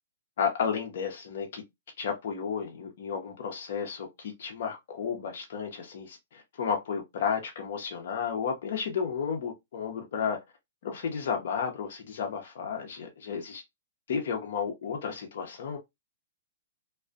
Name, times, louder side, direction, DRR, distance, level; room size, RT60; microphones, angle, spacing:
voice 1, 0.4-1.6 2.0-10.4 10.8-13.6 14.1-15.8, left 6 dB, 60° left, 0.6 m, -32 dB
2.5 x 2.1 x 2.4 m
hypercardioid pair, 150°, 0 cm